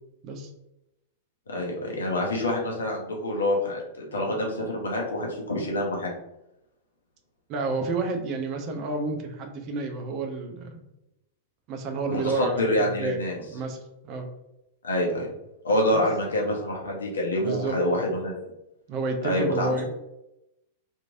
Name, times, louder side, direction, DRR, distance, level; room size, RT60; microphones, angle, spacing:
voice 1, 1.5-6.1 12.1-13.3 14.8-15.3 15.6-18.3 19.2-19.8, left 1 dB, 75° left, -1 dB, 0.8 m, -26 dB
voice 2, 7.5-10.8 11.7-13.2 13.5-13.8 14.0-14.3 15.9-16.0 17.4-17.8 18.9-19.8, right 3 dB, 40° right, 4 dB, 0.6 m, -30 dB
3.0 x 2.6 x 2.5 m, 0.88 s
figure-of-eight pair, 95°, 0 cm